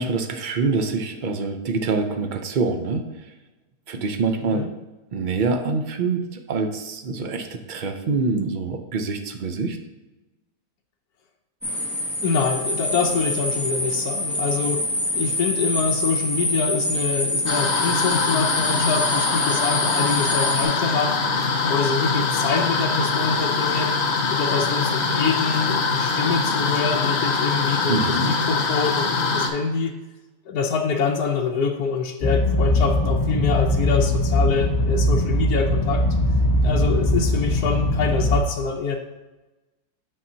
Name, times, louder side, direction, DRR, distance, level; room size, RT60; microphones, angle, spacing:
voice 1, 0.0-3.1 3.9-4.6 5.1-9.8 27.9-28.3, right 4 dB, 65° right, 5 dB, 0.4 m, -25 dB
sound 1, 11.6-20.6, left 1 dB, ahead, 1.8 m, -26 dB
voice 2, 12.2-14.9 15.1-21.2 21.7-24.0 24.3-29.9 30.5-36.0 36.6-39.0, left 5 dB, 80° left, 2 dB, 1.2 m, -25 dB
sound 2, 17.5-29.5, left 4 dB, 55° left, 0.9 m, -23 dB
sound 3, 32.2-38.4, left 1 dB, 20° left, 0.8 m, -21 dB
8.8 x 5.6 x 2.7 m, 1.1 s
omnidirectional pair, 1.7 m